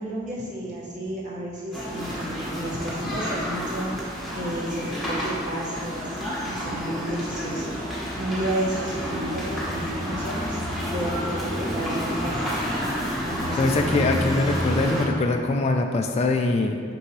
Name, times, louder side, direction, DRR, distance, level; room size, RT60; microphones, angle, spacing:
voice 1, 0.0-10.6 10.9-12.6 13.2-14.0, right 1 dB, 40° right, -6 dB, 1.4 m, -32 dB
sound 1, 1.7-15.1, equal, ahead, 1.1 m, -29 dB
voice 2, 13.6-16.8, left 2 dB, 30° left, 3 dB, 0.3 m, -23 dB
6.5 x 5.4 x 3.1 m, 2.2 s
head